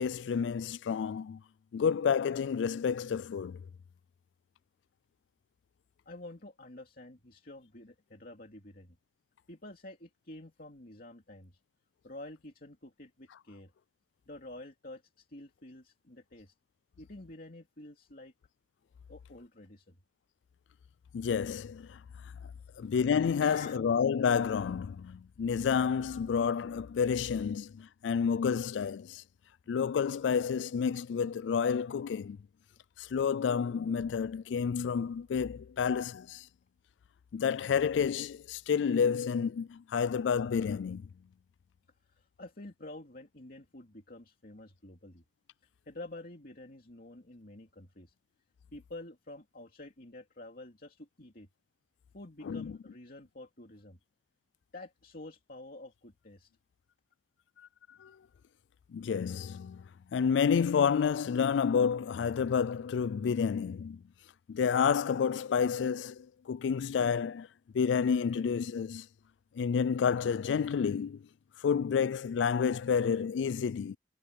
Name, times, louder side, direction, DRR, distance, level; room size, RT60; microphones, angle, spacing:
voice 1, 0.0-1.4 1.7-3.6 21.1-22.0 22.8-29.2 29.7-32.4 33.0-36.5 37.3-41.1 52.4-52.8 58.0-58.2 58.9-59.9 60.1-64.0 64.5-67.5 67.7-69.1 69.5-71.3 71.6-74.0, left 6 dB, 80° left, 0.3 m, -30 dB
voice 2, 6.1-9.0 9.5-11.6 12.0-13.7 14.3-16.5 17.0-18.3 19.1-20.0 22.6-22.8 23.4-23.9 42.0-45.2 45.9-48.1 48.7-51.5 52.1-54.0 54.7-56.5, left 2 dB, 55° left, 2.7 m, -49 dB
head